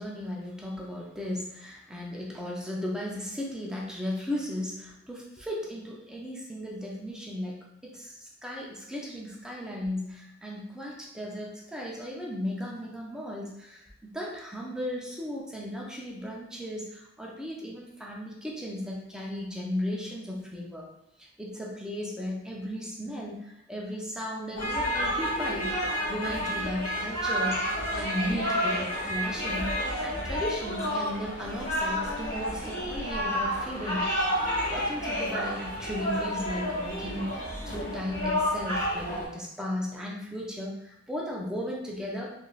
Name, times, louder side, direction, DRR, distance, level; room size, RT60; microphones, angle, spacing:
voice 1, 0.0-7.6 7.8-13.8 14.1-20.9 21.4-25.7 26.0-29.7 30.0-42.3, left 1 dB, 5° right, -3 dB, 0.5 m, -36 dB
sound 1, 24.6-39.3, equal, 40° left, 1.1 m, -30 dB
3.4 x 2.6 x 2.4 m, 0.82 s
head